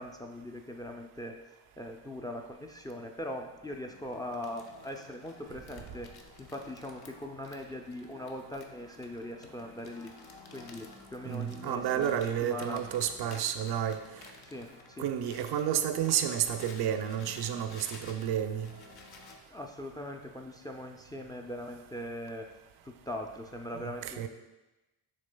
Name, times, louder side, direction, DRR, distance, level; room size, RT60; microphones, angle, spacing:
voice 1, 0.0-1.4 1.8-6.1 6.4-10.1 10.5-12.8 14.4-15.1 19.5-22.5 22.8-24.3, left 1 dB, 10° left, 3 dB, 0.3 m, -41 dB
sound 1, 3.4-19.4, left 3 dB, 85° left, 0.8 m, -55 dB
Crumpling crinkling, 4.1-15.7 16.0-19.4, left 4 dB, 55° left, 0.7 m, -55 dB
voice 2, 11.2-14.0 15.0-18.7 23.8-24.3, right 9 dB, 60° right, 9 dB, 0.5 m, -31 dB
6.5 x 3.2 x 2.2 m, 1.1 s
supercardioid pair, 55°, 46 cm